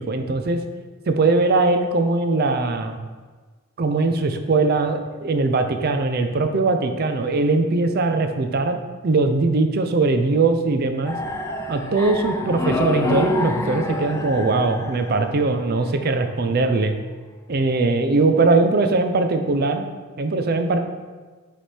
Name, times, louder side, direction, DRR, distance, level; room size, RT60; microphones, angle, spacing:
voice 1, 0.1-0.6 1.1-3.0 3.8-8.8 9.0-11.2 11.7-16.9 17.5-19.9 20.2-20.8, right 3 dB, 45° right, 7 dB, 0.5 m, -20 dB
sound 1, 11.0-16.0, left 2 dB, 15° left, 0.3 m, -27 dB
7.3 x 3.4 x 4.3 m, 1.4 s
head